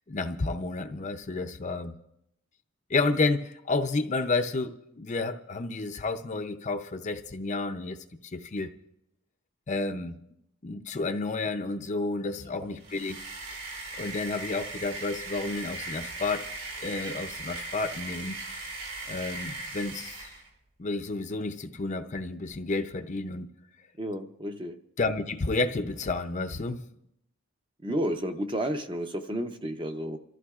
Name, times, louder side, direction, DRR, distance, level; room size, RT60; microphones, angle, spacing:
voice 1, 0.1-1.9 2.9-8.0 8.3-8.7 9.7-10.2 10.6-13.2 14.0-16.5 16.8-18.4 19.1-20.3 20.8-23.5 25.0-26.8, left 3 dB, 30° left, 6 dB, 0.5 m, -31 dB
sound 1, 12.7-20.5, right 2 dB, 70° right, 4.3 m, -39 dB
voice 2, 24.0-24.8 27.8-30.2, equal, 20° right, 6 dB, 0.6 m, -31 dB
29.0 x 14.0 x 2.4 m, 0.79 s
head